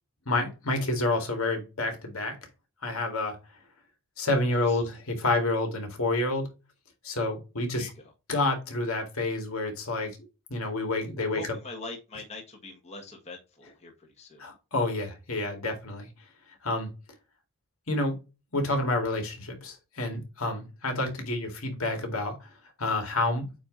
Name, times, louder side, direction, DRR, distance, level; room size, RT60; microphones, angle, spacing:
voice 1, 0.3-2.4 2.8-3.4 4.2-6.5 7.0-7.9 8.3-10.2 10.5-11.5 14.4-16.1 16.6-16.9 17.9-18.2 18.5-22.5 22.8-23.5, left 2 dB, 70° left, 2.1 m, -29 dB
voice 2, 4.5-4.8 7.8-8.1 11.2-14.5, left 2 dB, 30° left, 1.5 m, -43 dB
8.7 x 2.9 x 3.8 m
head